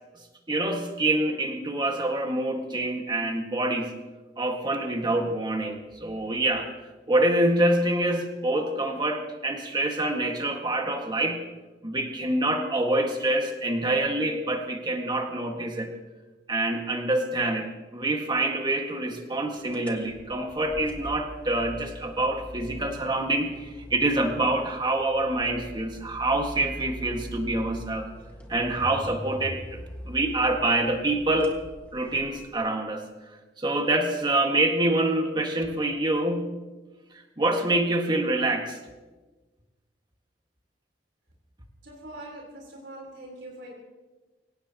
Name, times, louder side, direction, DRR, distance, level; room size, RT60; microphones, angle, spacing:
voice 1, 0.5-3.9 4.4-6.7 7.1-11.4 11.8-15.9 16.5-28.1 28.5-29.8 30.1-31.5 31.9-33.1 33.6-36.5 37.1-38.8, right 2 dB, 25° right, 3 dB, 1.8 m, -26 dB
sound 1, 19.7-32.5, equal, 10° left, 1.7 m, -42 dB
voice 2, 41.8-43.7, right 1 dB, 85° right, -2 dB, 3.9 m, -42 dB
26.0 x 17.0 x 3.0 m, 1.2 s
head